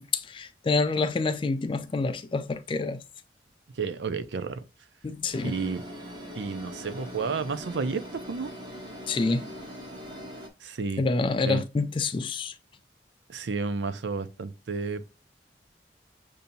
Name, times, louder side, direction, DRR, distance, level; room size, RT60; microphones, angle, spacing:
voice 1, 0.0-3.0 5.0-5.5 9.1-9.6 11.0-12.5, left 3 dB, 30° left, 0.3 m, -27 dB
voice 2, 3.7-4.6 5.4-5.8 6.3-8.5 10.6-11.0 11.4-11.6 13.3-15.1, right 4 dB, 85° right, 0.5 m, -31 dB
sound 1, 5.3-10.5, equal, 25° right, 1.1 m, -41 dB
6.8 x 2.7 x 2.6 m
head